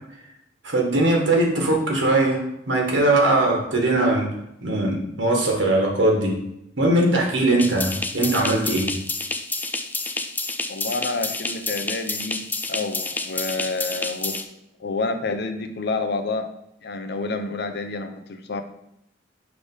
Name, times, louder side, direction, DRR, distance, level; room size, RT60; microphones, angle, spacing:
voice 1, 0.6-2.4 2.7-4.3 4.6-6.4 6.8-8.9, right 2 dB, 90° right, 0 dB, 1.6 m, -20 dB
sound 1, 7.6-14.4, left 3 dB, 10° left, 0.3 m, -29 dB
voice 2, 10.7-14.5 14.8-16.5 16.8-18.6, left 3 dB, 65° left, 8 dB, 0.6 m, -29 dB
5.0 x 3.4 x 5.5 m, 0.81 s
head